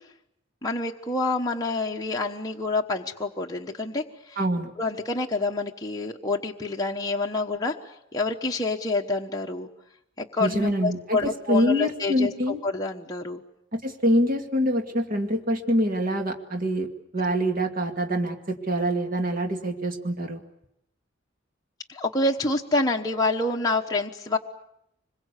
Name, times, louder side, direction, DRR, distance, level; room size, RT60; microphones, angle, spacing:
voice 1, 0.6-4.4 4.8-9.7 10.2-13.4 21.9-24.4, left 2 dB, 20° left, 0 dB, 1.1 m, -27 dB
voice 2, 4.4-4.7 10.4-12.6 13.7-16.9 17.1-20.4, equal, 45° right, 4 dB, 2.2 m, -25 dB
25.5 x 22.0 x 8.3 m, 0.79 s
head